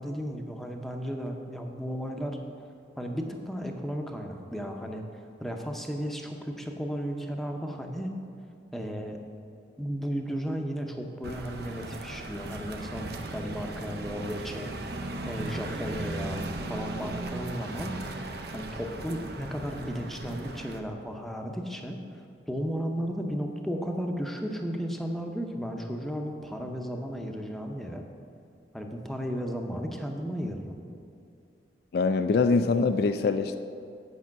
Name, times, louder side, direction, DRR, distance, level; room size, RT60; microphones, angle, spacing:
voice 1, 0.0-2.4 3.0-8.1 8.7-9.2 9.8-18.0 18.5-28.0 28.7-30.9, equal, ahead, 2 dB, 0.7 m, -34 dB
sound 1, 11.2-20.8, right 2 dB, 60° right, 0.7 m, -37 dB
voice 2, 31.9-33.6, left 4 dB, 55° left, 9 dB, 0.3 m, -24 dB
8.3 x 5.6 x 7.5 m, 2.4 s
head